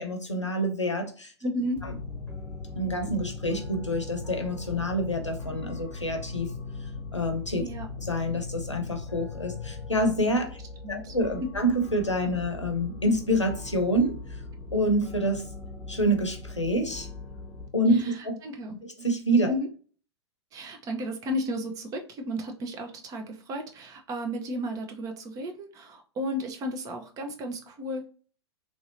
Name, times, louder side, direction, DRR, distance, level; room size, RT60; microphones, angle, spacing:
voice 1, 0.0-1.3 2.7-6.5 7.1-7.6 8.0-10.6 10.9-14.2 14.7-15.4 15.9-17.1 17.7-18.4 19.0-19.5, equal, 85° left, 4 dB, 0.7 m, -27 dB
voice 2, 1.4-1.9 7.6-7.9 10.8-11.2 17.9-18.8 19.5-19.7 20.5-28.1, equal, 25° right, 4 dB, 0.6 m, -33 dB
sound 1, 1.8-17.7, left 3 dB, 20° left, 1.0 m, -39 dB
3.1 x 2.7 x 2.6 m, 0.40 s
figure-of-eight pair, 100°, 15 cm